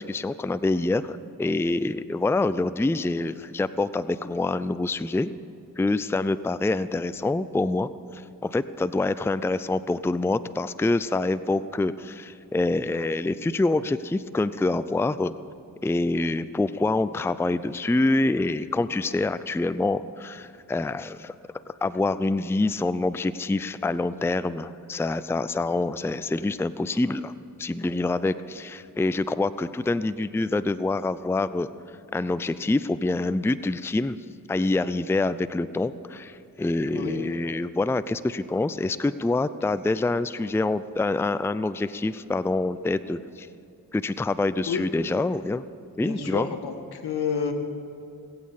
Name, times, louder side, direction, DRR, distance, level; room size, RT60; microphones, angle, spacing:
voice 1, 0.0-5.3 5.8-15.3 15.8-21.3 21.7-31.7 32.1-34.2 34.5-43.5 43.9-45.6 46.0-46.5, left 2 dB, 5° left, 14 dB, 0.5 m, -26 dB
voice 2, 36.9-37.3 44.7-44.8 46.0-46.7 47.0-47.5, left 6 dB, 80° left, 5 dB, 1.7 m, -29 dB
19.5 x 8.6 x 7.3 m, 2.7 s
cardioid pair, 45°, 38 cm